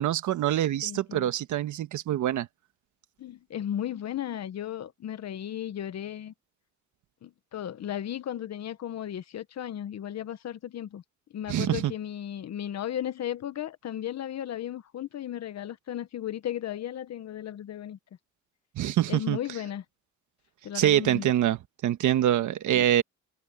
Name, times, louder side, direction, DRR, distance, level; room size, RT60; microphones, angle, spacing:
voice 1, 0.0-2.5 11.5-11.9 18.7-19.4 20.7-23.0, right 12 dB, 75° right, 1.4 m, -25 dB
voice 2, 0.8-1.3 3.2-6.3 7.2-11.0 11.3-18.0 19.1-19.8 20.6-21.3 22.7-22.9, left 11 dB, 60° left, 1.1 m, -35 dB
cardioid pair, 90°, 30 cm